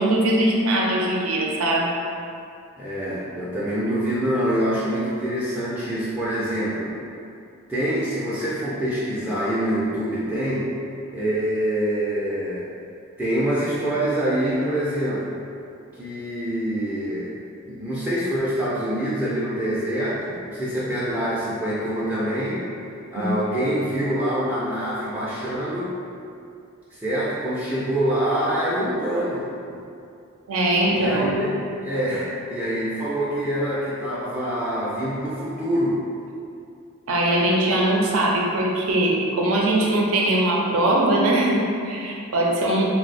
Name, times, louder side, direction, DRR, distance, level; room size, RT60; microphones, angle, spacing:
voice 1, 0.0-2.0 23.2-23.3 30.5-31.4 37.1-42.8, right 1 dB, 75° right, -2 dB, 0.5 m, -21 dB
voice 2, 2.8-6.9 7.7-10.7 11.1-12.6 13.2-15.3 16.0-17.3 17.7-22.6 23.1-25.9 26.9-29.4 29.7-29.8 30.9-36.0, right 1 dB, 5° right, -10 dB, 0.3 m, -25 dB
2.6 x 2.0 x 4.0 m, 2.5 s
head